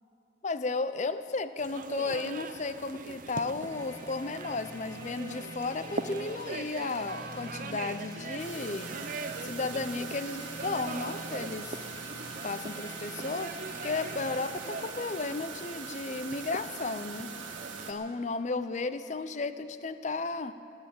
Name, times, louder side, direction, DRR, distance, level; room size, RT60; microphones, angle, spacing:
voice 1, 0.4-11.8 12.4-13.6 13.8-17.3 17.9-20.5, left 3 dB, 40° left, 12 dB, 0.5 m, -34 dB
sound 1, 1.6-17.9, right 4 dB, 45° right, 0.5 m, -42 dB
sound 2, 3.6-17.4, equal, 15° left, 2.6 m, -47 dB
sound 3, 8.4-17.9, right 5 dB, 85° right, 1.8 m, -42 dB
17.5 x 9.4 x 8.5 m, 2.9 s
head